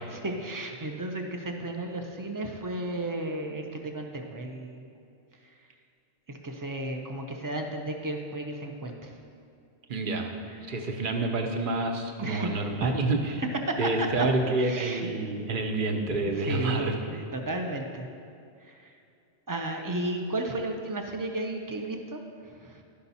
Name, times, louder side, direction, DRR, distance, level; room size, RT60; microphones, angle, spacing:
voice 1, 0.1-4.9 5.4-5.6 6.3-9.2 10.5-10.6 12.2-12.5 12.8-12.9 13.7-14.3 14.6-15.1 16.3-18.1 18.6-19.0 19.5-22.8, right 1 dB, 30° right, 3 dB, 0.3 m, -34 dB
voice 2, 9.9-10.3 10.7-13.4 13.8-16.9, right 2 dB, 50° right, 3 dB, 0.9 m, -28 dB
11.5 x 5.7 x 4.1 m, 2.5 s
omnidirectional pair, 1.2 m